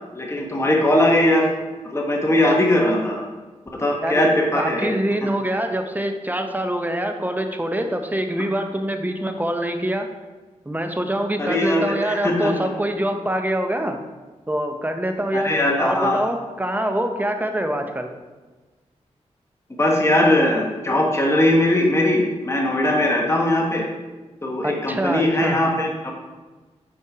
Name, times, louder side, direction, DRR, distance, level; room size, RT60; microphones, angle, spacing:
voice 1, 0.1-1.5 1.8-3.2 3.8-4.9 11.4-12.5 15.3-16.3 19.8-23.9 24.4-26.1, left 1 dB, 20° left, 0 dB, 1.4 m, -20 dB
voice 2, 4.5-10.1 10.7-14.0 14.5-15.5 15.8-18.1 24.6-25.6, right 1 dB, 15° right, 5 dB, 1.0 m, -25 dB
8.6 x 4.5 x 4.9 m, 1.3 s
cardioid pair, 60°, 12 cm